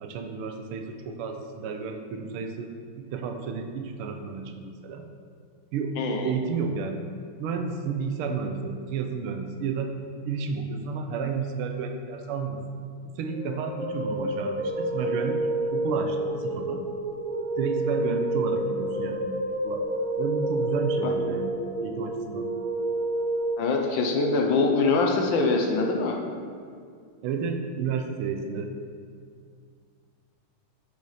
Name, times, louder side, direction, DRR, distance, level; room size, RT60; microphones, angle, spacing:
voice 1, 0.0-5.1 5.7-7.0 7.4-10.0 10.3-12.6 13.0-16.9 17.6-19.8 20.2-22.5 27.2-28.7, right 5 dB, 85° right, 5 dB, 1.5 m, -32 dB
voice 2, 6.0-6.3 21.0-21.1 23.6-26.2, left 3 dB, 70° left, 1 dB, 1.4 m, -24 dB
sound 1, 13.3-23.5, right 1 dB, 40° right, 2.4 m, -29 dB
6.8 x 5.5 x 4.8 m, 2.1 s
omnidirectional pair, 2.4 m